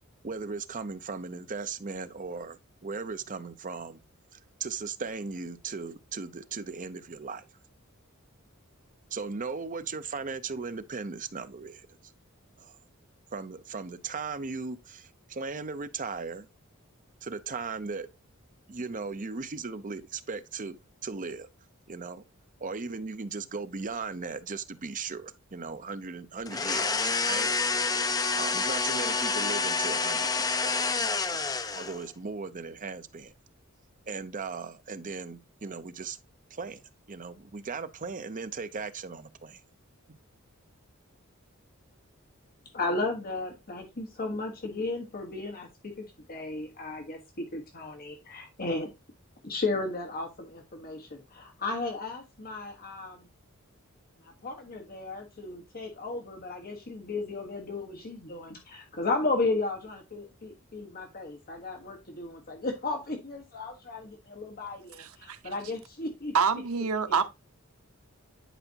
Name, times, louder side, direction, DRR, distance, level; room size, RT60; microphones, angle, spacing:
voice 1, 0.2-4.0 4.3-7.5 9.1-12.0 12.6-12.8 13.3-16.5 17.2-18.1 18.7-20.8 21.0-21.5 21.9-22.2 22.6-27.5 28.3-33.3 34.1-36.2 36.5-36.8 37.1-39.6 40.1-40.2, right 4 dB, 40° right, 0.7 m, -37 dB
sound 1, 26.5-32.1, left 4 dB, 15° left, 0.5 m, -28 dB
voice 2, 42.7-48.9 49.4-53.3 54.2-66.3, left 3 dB, 45° left, 1.3 m, -34 dB
voice 3, 65.0-65.5 66.3-67.2, right 6 dB, 85° right, 0.9 m, -27 dB
10.0 x 5.0 x 2.8 m
head